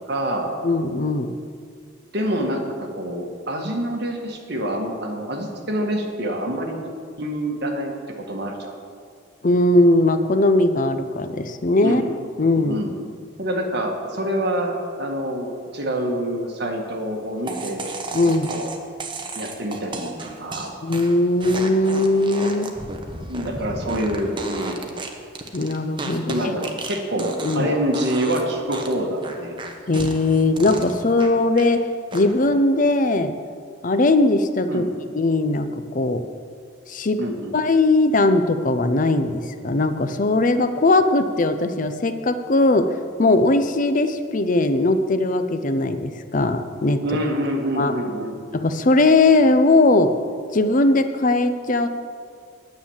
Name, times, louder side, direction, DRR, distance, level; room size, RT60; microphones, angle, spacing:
voice 1, 0.1-0.5 2.1-6.8 7.2-7.9 8.3-8.7 11.8-12.0 12.6-13.0 13.4-18.0 18.5-18.7 19.3-20.7 23.2-24.8 26.2-29.6 34.7-34.9 37.2-37.5 47.0-48.4, right 1 dB, 55° right, 1 dB, 1.7 m, -26 dB
voice 2, 0.6-1.4 9.4-12.0 12.4-12.8 18.1-18.5 20.8-22.7 25.5-26.4 27.4-27.7 29.9-31.8 32.1-33.3 33.8-34.9 35.1-36.2 36.9-37.2 37.5-47.0 47.8-47.9 48.5-50.1 50.5-51.9, left 2 dB, 40° left, 10 dB, 0.6 m, -19 dB
sound 1, 17.5-27.7 27.9-28.4 28.7-31.7 32.1-32.5, right 2 dB, 25° right, 1.0 m, -33 dB
9.6 x 9.0 x 7.2 m, 2.2 s
head